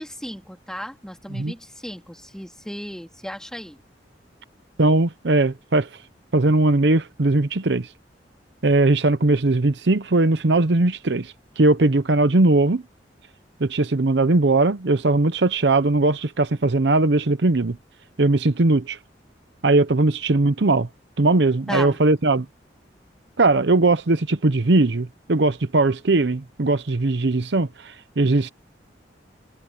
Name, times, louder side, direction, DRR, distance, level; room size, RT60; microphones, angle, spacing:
voice 1, 0.0-3.8 21.7-22.0, equal, 5° left, 3.7 m, -35 dB
voice 2, 4.8-5.9 6.3-7.9 8.6-12.8 13.6-17.8 18.2-19.0 19.6-20.9 21.2-22.5 23.4-28.5, right 2 dB, 65° right, 0.8 m, -19 dB
head